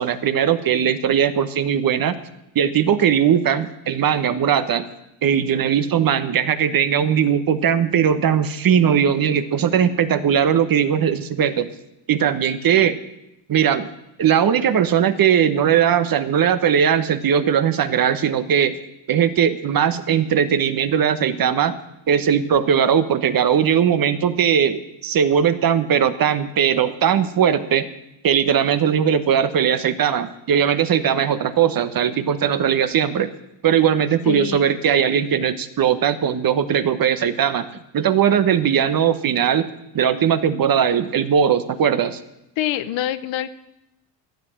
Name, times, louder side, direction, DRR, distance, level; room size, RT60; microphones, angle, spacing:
voice 1, 0.0-2.2 2.5-4.9 5.2-11.7 12.1-13.0 13.5-13.9 14.2-18.7 19.1-21.8 22.1-27.9 28.2-33.3 33.6-37.7 37.9-39.7 39.9-42.2, right 8 dB, 45° right, 12 dB, 1.1 m, -19 dB
voice 2, 34.3-34.7 42.6-43.5, left 12 dB, 70° left, 13 dB, 1.0 m, -25 dB
13.0 x 7.8 x 7.7 m, 0.87 s
supercardioid pair, 80°, 48 cm